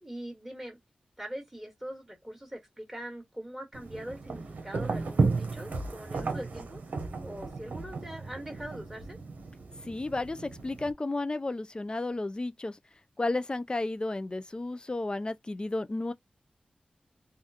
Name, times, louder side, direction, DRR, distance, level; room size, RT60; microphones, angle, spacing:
voice 1, 0.0-0.8 1.2-9.2, right 1 dB, 10° right, 1.8 m, -42 dB
sound 1, 3.7-10.9, right 4 dB, 80° right, 0.8 m, -34 dB
voice 2, 9.9-12.8 13.2-16.1, left 2 dB, 30° left, 0.4 m, -32 dB
3.4 x 2.3 x 2.8 m
cardioid pair, 50°, 3 cm